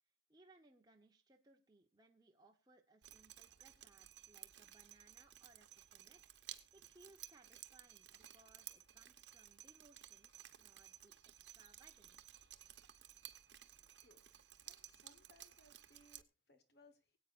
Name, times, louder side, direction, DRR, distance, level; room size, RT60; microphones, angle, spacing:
voice 1, 0.3-6.2 6.5-10.3 10.6-12.4, right 2 dB, 20° right, 2 dB, 1.0 m, -68 dB
Drip, 3.0-16.2, right 12 dB, 90° right, 0.9 m, -57 dB
voice 2, 14.6-17.2, left 2 dB, 65° left, 9 dB, 1.3 m, -68 dB
24.0 x 8.5 x 2.5 m, 0.29 s
head